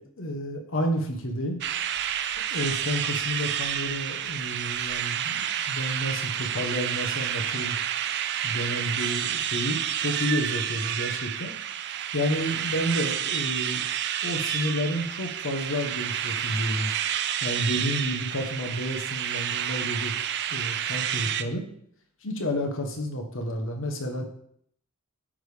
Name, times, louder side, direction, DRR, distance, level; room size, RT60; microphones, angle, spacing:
voice 1, 0.0-1.6 2.5-7.8 8.4-11.5 12.1-13.8 14.2-16.9 17.4-20.1 20.5-21.7 22.2-24.2, equal, 60° left, 4 dB, 1.1 m, -30 dB
sound 1, 1.6-21.4, right 10 dB, 50° right, 0.4 m, -29 dB
8.7 x 3.5 x 5.0 m, 0.67 s
head